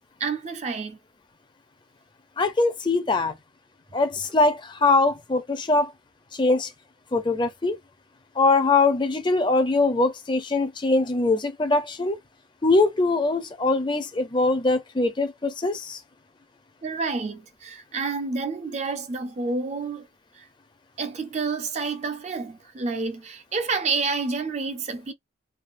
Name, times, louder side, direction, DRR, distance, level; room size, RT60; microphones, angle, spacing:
voice 1, 0.2-1.0 16.8-20.1 20.4-20.5 21.0-25.1, right 4 dB, 35° right, 0.4 m, -29 dB
voice 2, 2.4-3.3 3.9-5.9 6.3-6.7 7.1-7.8 8.4-12.2 12.6-16.0, left 3 dB, 25° left, 0.5 m, -22 dB
3.5 x 2.2 x 2.5 m
head